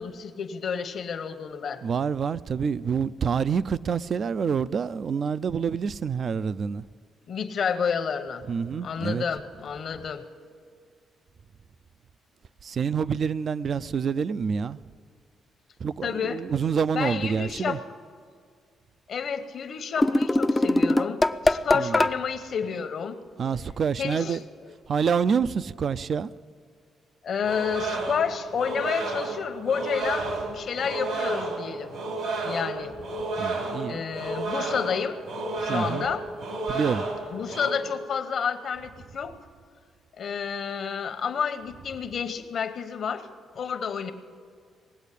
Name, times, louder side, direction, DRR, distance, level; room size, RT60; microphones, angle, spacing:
voice 1, 0.0-1.8 7.3-8.4 8.8-10.2 16.0-16.4 16.9-17.8 19.1-23.2 24.0-24.4 27.2-31.9 32.3-33.0 33.8-35.2 35.6-36.3 37.3-39.4 40.2-43.3 43.5-44.1, left 6 dB, 60° left, 1.0 m, -30 dB
voice 2, 1.8-6.8 8.5-9.2 12.6-14.8 15.8-17.8 21.7-22.0 23.4-24.4 24.9-26.3 33.4-34.0 35.7-36.1 36.7-37.0, right 6 dB, 50° right, 0.4 m, -27 dB
sound 1, 20.0-22.2, left 2 dB, 15° left, 0.4 m, -22 dB
sound 2, 27.4-37.7, right 2 dB, 80° right, 3.1 m, -31 dB
19.0 x 8.2 x 8.3 m
cardioid pair, 90°, 0 cm